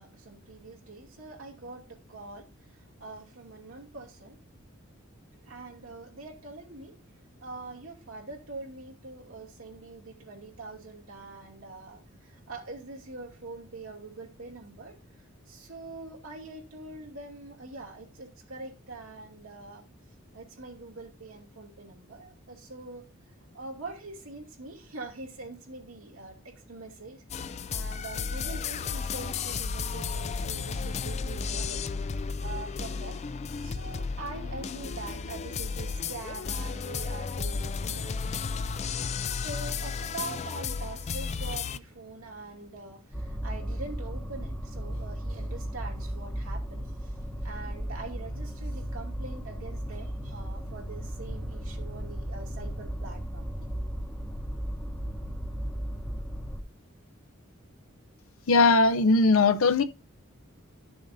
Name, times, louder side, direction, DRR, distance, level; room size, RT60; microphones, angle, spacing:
voice 1, 0.0-4.4 5.5-6.9 7.4-19.8 20.3-23.1 23.5-31.9 32.4-33.2 33.6-38.0 39.3-47.1 47.4-53.7, right 3 dB, 75° right, 2.5 m, -44 dB
sound 1, 27.3-41.8, left 5 dB, 30° left, 0.3 m, -33 dB
sound 2, 43.1-56.6, equal, 10° left, 1.5 m, -35 dB
voice 2, 58.5-59.8, left 3 dB, 75° left, 0.6 m, -20 dB
12.5 x 6.9 x 2.6 m
head